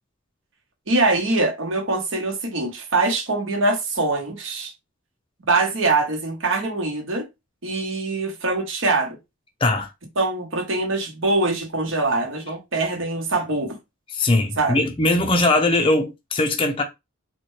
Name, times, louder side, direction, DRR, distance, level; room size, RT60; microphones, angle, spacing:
voice 1, 0.9-4.7 5.5-7.3 7.6-9.2 10.2-13.8 14.6-14.8, right 2 dB, 65° right, 1.0 m, -23 dB
voice 2, 14.1-16.8, left 2 dB, 25° left, 0.5 m, -20 dB
4.1 x 2.2 x 3.1 m
head